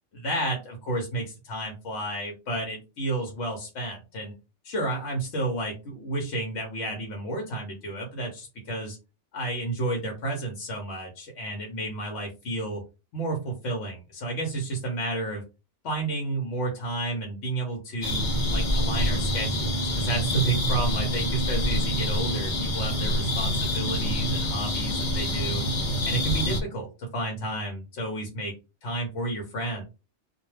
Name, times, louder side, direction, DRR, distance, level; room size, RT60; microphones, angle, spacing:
voice 1, 0.1-4.3 4.6-9.0 9.3-12.8 13.1-15.4 15.8-25.6 26.0-28.5 28.8-29.8, right 2 dB, 75° left, 2 dB, 1.0 m, -31 dB
sound 1, 18.0-26.6, equal, 50° left, 0.6 m, -26 dB
2.3 x 2.2 x 3.1 m, 0.29 s
omnidirectional pair, 1.2 m